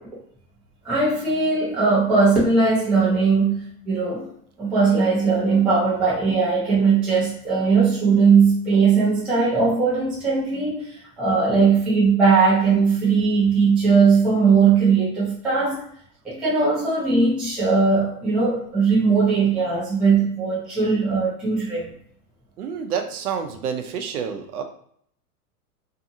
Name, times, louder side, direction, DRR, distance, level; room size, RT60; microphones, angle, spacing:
voice 1, 0.8-4.3 4.6-15.8 16.2-21.9, right 4 dB, ahead, -8 dB, 0.3 m, -19 dB
voice 2, 22.6-24.6, right 7 dB, 65° right, 6 dB, 0.6 m, -28 dB
2.6 x 2.5 x 2.6 m, 0.63 s
hypercardioid pair, 110°, 47 cm